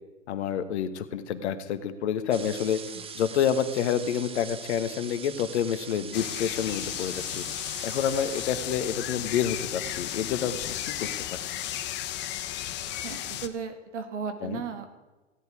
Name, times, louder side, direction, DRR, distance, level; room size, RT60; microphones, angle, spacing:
voice 1, 0.3-2.8 3.1-7.4 7.8-11.1 14.4-14.6, left 8 dB, 60° left, 11 dB, 1.4 m, -28 dB
sound 1, 2.3-8.5, right 6 dB, 15° right, 0.9 m, -42 dB
sound 2, 6.1-13.5, left 12 dB, 30° left, 1.0 m, -34 dB
voice 2, 13.0-14.9, right 6 dB, 70° right, 8 dB, 2.2 m, -35 dB
16.0 x 11.0 x 4.8 m, 1.2 s
hypercardioid pair, 110°, 37 cm